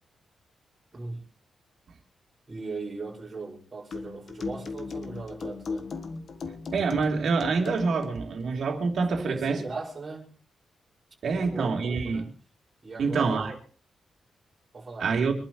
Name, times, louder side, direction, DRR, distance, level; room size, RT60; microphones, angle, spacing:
voice 1, 0.9-1.3 2.5-5.9 9.2-10.4 11.3-12.3 12.8-13.6 14.7-15.1, right 3 dB, 25° right, 6.2 m, -39 dB
sound 1, 3.9-8.2, left 4 dB, 50° left, 1.5 m, -37 dB
voice 2, 6.4-9.6 11.2-12.2 13.0-13.5 15.0-15.3, right 4 dB, 60° right, 3.3 m, -26 dB
26.0 x 11.5 x 3.2 m
wide cardioid pair, 155°, 0 cm